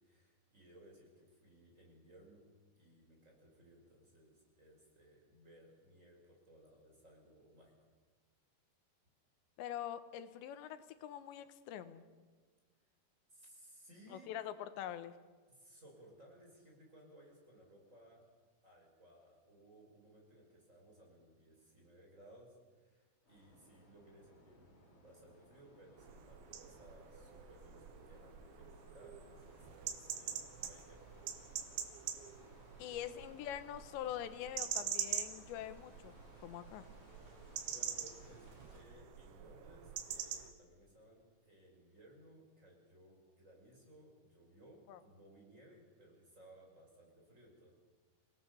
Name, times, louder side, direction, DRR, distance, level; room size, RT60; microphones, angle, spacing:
voice 1, 0.0-2.4 2.8-7.7 13.3-14.3 15.5-18.2 18.6-31.1 37.6-47.7, right 1 dB, 15° right, -1 dB, 5.8 m, -61 dB
voice 2, 9.6-12.0 14.1-15.2 32.8-36.1 36.4-36.9 44.9-45.0, left 11 dB, 90° left, 12 dB, 3.3 m, -44 dB
sound 1, 23.2-38.8, left 1 dB, 30° left, 5.7 m, -63 dB
sound 2, 26.0-40.5, right 9 dB, 85° right, 3.8 m, -45 dB
29.0 x 18.0 x 6.9 m, 1.4 s
omnidirectional pair, 5.1 m